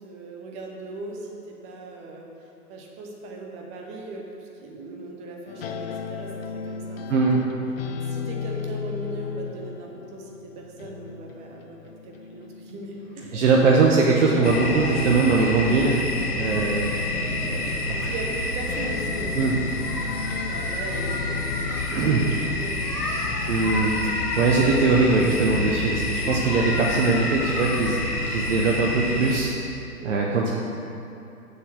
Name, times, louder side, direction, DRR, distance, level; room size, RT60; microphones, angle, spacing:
voice 1, 0.0-2.3 2.7-7.5 8.0-13.6 16.4-16.7 17.9-19.5 20.2-23.1 30.0-30.2, right 2 dB, 15° right, 0 dB, 0.8 m, -38 dB
sound 1, 5.5-18.4 18.7-21.9, left 6 dB, 40° left, 0.5 m, -36 dB
voice 2, 13.3-16.0 16.4-18.1 19.4-19.5 21.9-22.2 23.5-27.9 28.3-29.5 30.0-30.5, right 4 dB, 50° right, -3 dB, 1.1 m, -21 dB
sound 2, 14.4-29.4, left 2 dB, 75° left, 1.5 m, -28 dB
7.0 x 7.0 x 6.2 m, 2.8 s
figure-of-eight pair, 125°, 46 cm